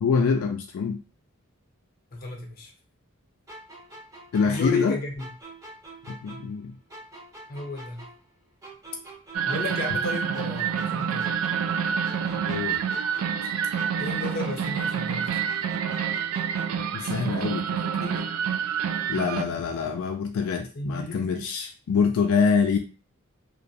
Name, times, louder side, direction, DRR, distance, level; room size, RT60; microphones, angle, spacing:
voice 1, 0.0-1.0 4.3-5.0 6.1-6.8 12.5-12.8 16.9-17.8 19.1-22.8, left 5 dB, 80° left, 3 dB, 0.3 m, -25 dB
voice 2, 2.1-2.7 4.4-5.3 7.5-8.1 9.4-11.3 14.0-15.5 17.7-18.3 20.7-21.5, left 3 dB, 45° left, 2 dB, 0.6 m, -33 dB
sound 1, 3.5-6.6 6.9-10.1 10.3-13.5 13.8-16.9, right 2 dB, 15° right, 0.7 m, -46 dB
sound 2, 9.3-19.4, right 7 dB, 90° right, 0.3 m, -28 dB
2.2 x 2.1 x 2.6 m, 0.35 s
head